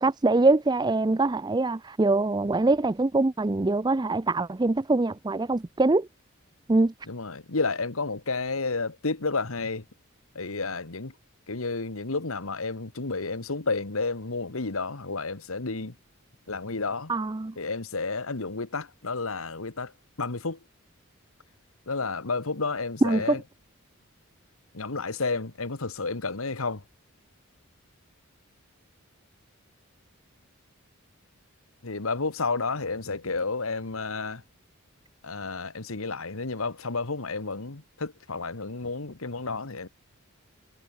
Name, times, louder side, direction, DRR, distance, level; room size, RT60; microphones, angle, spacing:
voice 1, 0.0-6.1 6.7-6.9 17.1-17.5 23.0-23.4, right 2 dB, 20° right, 0.4 m, -23 dB
voice 2, 7.1-9.8 10.4-11.1 11.5-16.0 16.5-17.1 17.6-19.9 20.2-20.6 21.9-23.4 24.7-26.8 31.8-34.4 35.2-39.9, left 3 dB, 80° left, 1.6 m, -31 dB
head